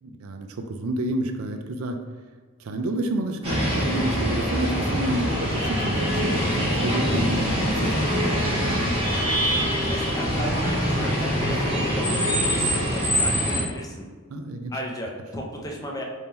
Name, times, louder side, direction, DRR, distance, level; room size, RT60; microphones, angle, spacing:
voice 1, 0.0-2.0 2.6-8.8 14.3-14.7, right 1 dB, 80° right, 6 dB, 0.4 m, -29 dB
sound 1, 3.4-13.6, equal, 30° right, 1.4 m, -24 dB
voice 2, 9.9-14.1 14.7-16.0, equal, 15° left, -1 dB, 0.5 m, -34 dB
3.6 x 2.7 x 4.3 m, 1.4 s
head